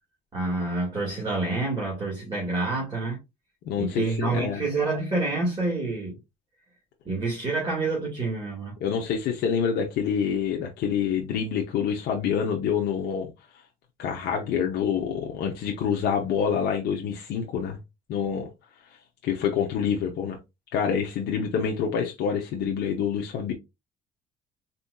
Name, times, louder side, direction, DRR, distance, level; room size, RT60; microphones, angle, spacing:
voice 1, 0.3-3.2 3.8-6.2 7.1-8.8, right 3 dB, 25° right, 1.9 m, -28 dB
voice 2, 3.7-4.6 8.8-13.3 14.0-17.8 18.1-18.5 19.2-20.4 20.7-23.5, left 7 dB, 75° left, 0.7 m, -27 dB
4.3 x 2.6 x 2.2 m
cardioid pair, 110°, 17 cm